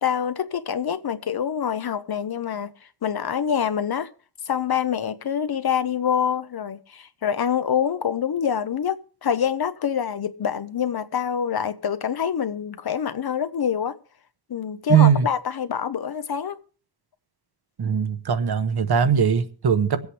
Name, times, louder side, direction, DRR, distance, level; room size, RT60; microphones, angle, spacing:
voice 1, 0.0-2.7 3.0-4.1 4.5-13.9 14.5-16.6, left 8 dB, 70° left, 0.9 m, -26 dB
voice 2, 14.9-15.3 17.8-20.1, right 8 dB, 70° right, 1.0 m, -20 dB
24.5 x 8.2 x 3.3 m
wide cardioid pair, 125°, 39 cm